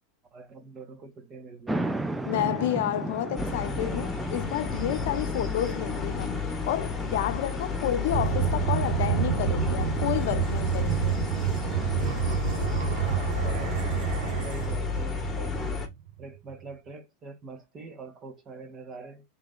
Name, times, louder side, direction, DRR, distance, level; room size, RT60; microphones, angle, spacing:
voice 1, 0.3-1.9 13.0-15.9 16.2-19.2, right 4 dB, 35° right, 1.6 m, -44 dB
sound 1, 1.7-12.4, right 2 dB, 5° right, 0.5 m, -37 dB
voice 2, 2.3-11.3, left 12 dB, 75° left, 0.6 m, -30 dB
sound 2, 3.4-15.9, left 5 dB, 15° left, 1.5 m, -32 dB
sound 3, 8.1-16.2, right 10 dB, 70° right, 1.3 m, -29 dB
3.7 x 3.6 x 3.8 m
supercardioid pair, 120°, 0 cm